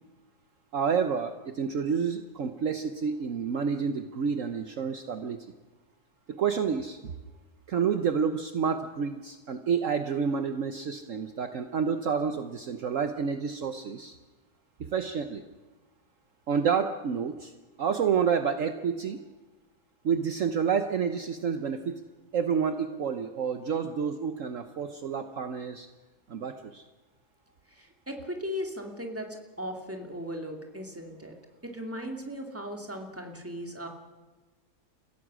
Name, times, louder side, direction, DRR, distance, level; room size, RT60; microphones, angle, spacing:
voice 1, 0.7-5.4 6.3-7.0 7.7-14.2 14.8-15.4 16.5-17.5 17.8-19.2 20.0-22.0 22.3-25.9 26.3-26.8, right 6 dB, 60° right, 8 dB, 1.2 m, -29 dB
voice 2, 27.7-31.3 31.6-33.9, equal, 10° right, 3 dB, 2.5 m, -37 dB
29.5 x 16.0 x 6.2 m, 1.2 s
omnidirectional pair, 1.6 m